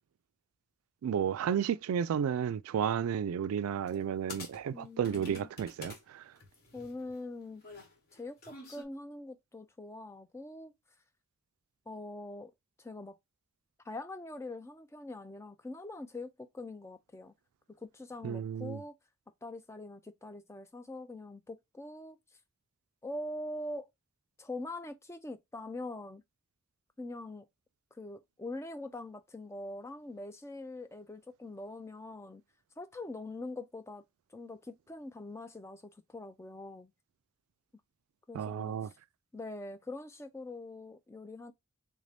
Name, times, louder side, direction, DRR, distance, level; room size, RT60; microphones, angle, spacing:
voice 1, 1.0-6.2 18.2-18.8 38.3-38.9, right 8 dB, 85° right, 0.3 m, -32 dB
sound 1, 3.9-4.0 4.3-6.0 6.4-8.8, left 2 dB, 45° left, 1.1 m, -48 dB
voice 2, 4.7-5.5 6.7-7.6 8.1-10.7 11.9-12.5 12.8-13.2 13.9-17.3 17.8-18.9 19.4-22.2 23.0-23.9 24.4-26.2 27.0-27.5 28.0-32.4 32.8-34.0 34.3-36.9 38.3-38.9 39.3-41.5, left 2 dB, 10° left, 0.3 m, -43 dB
3.6 x 2.6 x 3.3 m
head